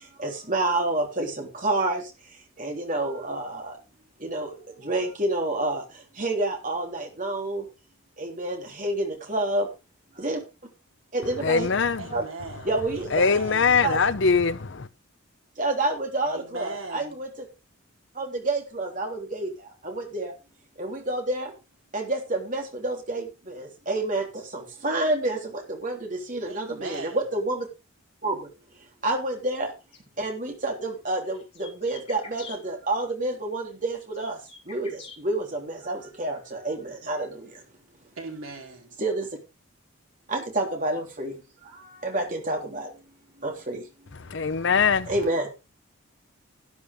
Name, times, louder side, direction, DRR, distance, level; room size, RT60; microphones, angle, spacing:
voice 1, 0.2-2.0 2.6-3.7 4.2-4.5 4.8-5.8 6.2-7.6 8.2-9.7 10.2-10.4 11.1-11.7 12.1-12.2 12.7-13.1 13.8-14.0 15.6-17.3 18.2-19.5 19.8-20.3 20.8-21.5 21.9-24.2 24.5-25.4 25.7-26.0 26.3-27.7 28.2-28.4 29.0-29.7 30.2-34.4 34.7-34.9 35.2-37.3 39.0-39.2 40.3-41.3 42.0-42.9 43.4-43.8 45.1-45.5, right 2 dB, 35° right, 3.4 m, -28 dB
voice 2, 11.4-12.2 13.1-14.9 44.2-45.1, left 5 dB, 55° left, 0.7 m, -22 dB
voice 3, 12.0-12.7 13.0-13.8 16.2-17.2 26.4-27.2 38.2-39.0, right 3 dB, 70° right, 3.7 m, -38 dB
sound 1, 29.9-30.0 30.9-32.6 33.7-35.2, left 5 dB, 30° left, 3.7 m, -45 dB
12.0 x 10.5 x 3.6 m
head